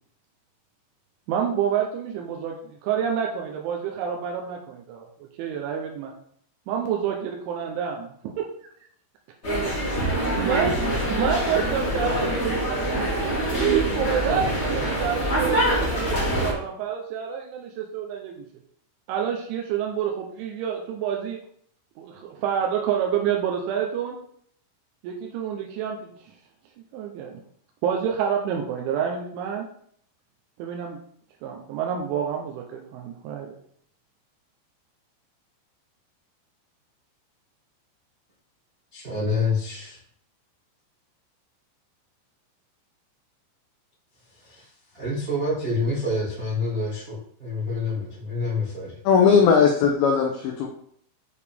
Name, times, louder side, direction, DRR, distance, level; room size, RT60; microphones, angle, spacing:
voice 1, 1.3-5.0 5.4-6.1 6.7-8.5 10.3-10.8 11.1-18.4 19.1-21.4 22.0-24.2 25.0-26.2 26.9-27.3 27.8-29.7 30.6-31.0 31.4-33.5, right 8 dB, 85° right, 1 dB, 3.2 m, -28 dB
sound 1, 9.4-16.5, right 1 dB, 45° left, 0.8 m, -25 dB
voice 2, 38.9-40.0 44.4-44.6 44.9-48.9, left 2 dB, 55° right, -8 dB, 0.9 m, -27 dB
voice 3, 49.1-50.7, left 6 dB, 85° left, 1 dB, 2.1 m, -18 dB
8.7 x 4.8 x 3.5 m, 0.63 s
omnidirectional pair, 5.4 m